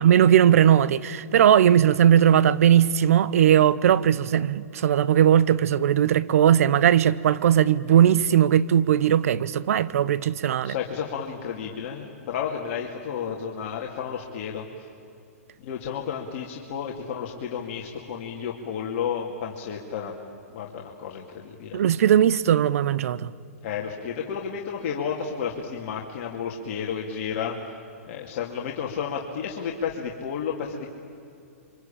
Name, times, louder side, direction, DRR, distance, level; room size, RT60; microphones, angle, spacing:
voice 1, 0.0-10.7 21.7-23.3, right 10 dB, 65° right, 0.9 m, -19 dB
voice 2, 10.6-14.7 15.6-20.1 20.5-21.8 23.6-27.6 28.0-30.9, left 7 dB, 50° left, 2.6 m, -32 dB
27.0 x 25.0 x 8.9 m
hypercardioid pair, 125°, 8 cm